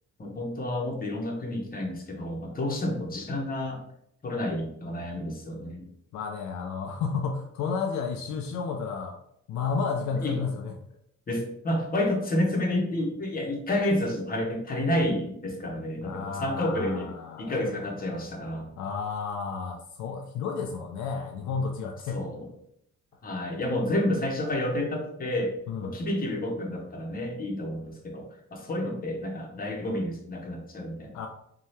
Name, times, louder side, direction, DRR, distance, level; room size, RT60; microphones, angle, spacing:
voice 1, 0.2-3.8 4.2-5.9 10.1-10.3 11.3-17.1 17.4-18.7 22.1-22.5 23.2-25.5 25.8-31.3, left 1 dB, 30° left, 1 dB, 0.8 m, -30 dB
voice 2, 6.1-9.2 9.5-10.7 16.0-17.7 18.8-22.3 25.7-25.9 31.1-31.3, left 5 dB, 70° left, 3 dB, 0.4 m, -32 dB
2.7 x 2.3 x 3.2 m, 0.74 s
cardioid pair, 85°, 31 cm